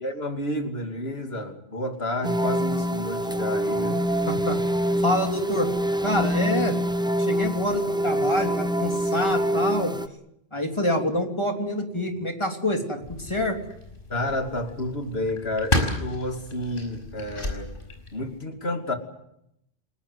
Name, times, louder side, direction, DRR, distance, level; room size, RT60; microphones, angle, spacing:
voice 1, 0.0-4.1 14.1-17.7 18.1-19.0, left 1 dB, 80° left, 5 dB, 2.9 m, -30 dB
sound 1, 2.2-10.1, equal, 5° right, 0.9 m, -25 dB
voice 2, 4.3-4.6 5.0-5.7 6.0-6.8 7.2-9.9 10.5-13.6, left 1 dB, 30° left, 4 dB, 3.3 m, -26 dB
sound 2, 13.0-18.4, left 1 dB, 60° left, 6.0 m, -32 dB
29.0 x 19.0 x 8.1 m, 0.78 s
omnidirectional pair, 1.0 m